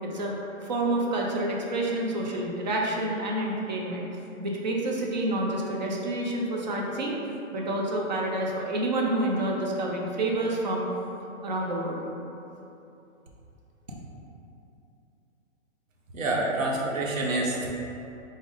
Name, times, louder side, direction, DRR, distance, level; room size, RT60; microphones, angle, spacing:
voice 1, 0.0-0.4 0.6-4.1 4.4-7.1 7.5-10.9 11.4-12.1, right 1 dB, 35° right, -2 dB, 0.4 m, -28 dB
voice 2, 16.1-17.7, right 2 dB, 85° right, -2 dB, 1.0 m, -27 dB
4.9 x 2.0 x 3.7 m, 2.9 s
hypercardioid pair, 165°, 39 cm